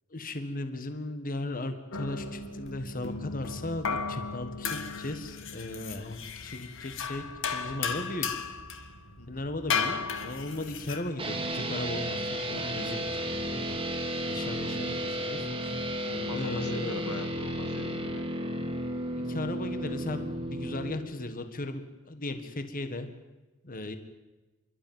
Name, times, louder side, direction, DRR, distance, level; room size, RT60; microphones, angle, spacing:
voice 1, 0.1-7.2 7.5-8.3 9.3-9.9 10.2-13.8 14.3-15.8 16.3-17.0 19.2-23.1 23.6-24.0, left 2 dB, 40° left, 8 dB, 1.7 m, -36 dB
sound 1, 1.9-11.1, left 5 dB, 60° left, 1.8 m, -35 dB
voice 2, 9.2-9.5 16.0-18.2, left 2 dB, 85° left, 7 dB, 2.3 m, -42 dB
sound 2, 11.2-21.0, right 1 dB, 25° right, 2.3 m, -33 dB
28.0 x 12.5 x 9.1 m, 1.1 s
head